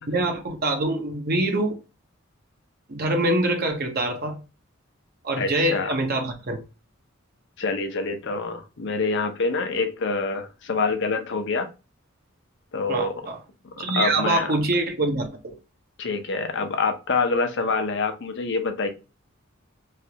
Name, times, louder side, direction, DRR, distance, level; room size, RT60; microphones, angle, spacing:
voice 1, 0.1-1.7 2.9-4.4 5.2-6.6 12.9-13.4 13.8-15.5, right 2 dB, 50° right, 0.7 m, -25 dB
voice 2, 5.4-5.9 7.6-11.7 12.7-13.1 13.9-14.5 16.0-18.9, left 4 dB, 60° left, 0.7 m, -26 dB
3.2 x 2.4 x 2.7 m
head